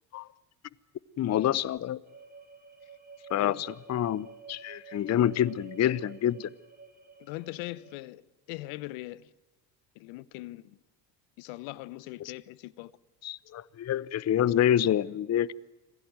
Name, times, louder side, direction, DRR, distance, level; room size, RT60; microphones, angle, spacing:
voice 1, 1.2-2.0 3.3-6.5 12.2-12.3 13.2-15.5, left 11 dB, 35° left, 0.7 m, -27 dB
sound 1, 2.0-8.0, right 5 dB, 15° right, 7.2 m, -51 dB
voice 2, 7.2-8.2 8.5-9.3 9.9-10.8 11.4-12.9, left 19 dB, 70° left, 1.0 m, -40 dB
26.0 x 16.5 x 9.3 m
hypercardioid pair, 70°, 49 cm